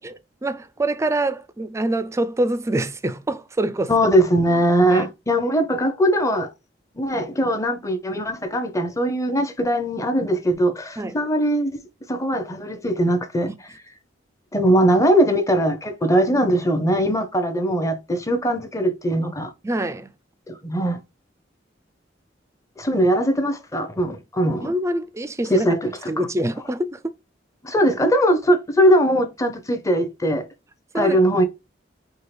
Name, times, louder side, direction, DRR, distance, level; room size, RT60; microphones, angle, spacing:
voice 1, 0.0-3.9 4.9-5.1 11.0-11.2 13.5-13.6 19.6-20.2 24.6-25.7 26.1-27.1 30.9-31.2, right 1 dB, 15° right, 0.3 m, -25 dB
voice 2, 3.9-6.5 7.0-11.8 12.1-13.5 14.5-19.5 20.5-21.0 22.8-24.7 25.5-25.9 27.6-30.5 30.9-31.4, equal, 15° left, 0.7 m, -20 dB
4.6 x 2.7 x 3.2 m
head